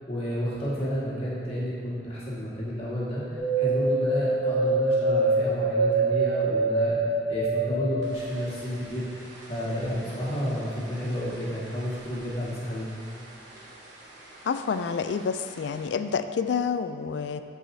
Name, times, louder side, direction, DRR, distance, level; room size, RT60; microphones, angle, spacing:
voice 1, 0.1-7.0 7.3-9.0 9.5-12.9, equal, 30° left, -8 dB, 1.7 m, -31 dB
sound 1, 3.4-12.8 13.0-13.9 14.2-15.2 15.5-15.6, right 3 dB, 65° right, 1.3 m, -27 dB
voice 2, 14.5-17.4, left 6 dB, 65° left, 10 dB, 0.3 m, -28 dB
13.5 x 4.8 x 2.7 m, 2.7 s
head